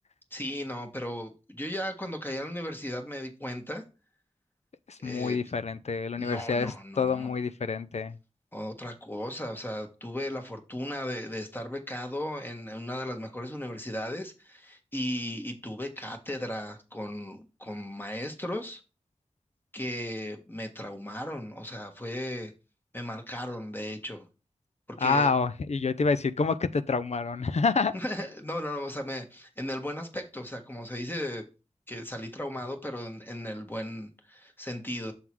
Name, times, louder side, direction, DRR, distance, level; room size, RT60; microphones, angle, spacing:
voice 1, 0.3-3.8 5.0-5.5 6.2-7.4 8.5-18.8 19.7-22.5 22.9-24.3 24.9-25.3 27.9-31.5 31.9-35.1, left 1 dB, 15° left, 1.5 m, -36 dB
voice 2, 4.9-8.2 25.0-27.9, left 4 dB, 70° left, 0.5 m, -27 dB
7.2 x 3.7 x 4.6 m
wide cardioid pair, 50°, 12 cm